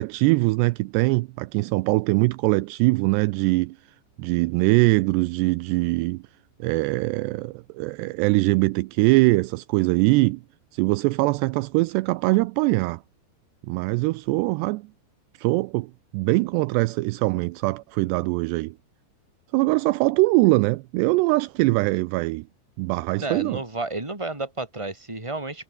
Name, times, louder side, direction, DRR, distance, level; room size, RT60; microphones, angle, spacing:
voice 1, 0.0-3.8 4.2-6.2 6.6-10.4 10.7-13.0 13.6-14.8 15.4-18.7 19.5-22.5 22.8-23.6, right 22 dB, 85° right, 2.4 m, -22 dB
voice 2, 23.2-25.6, right 2 dB, 5° right, 4.0 m, -31 dB
omnidirectional pair, 5.4 m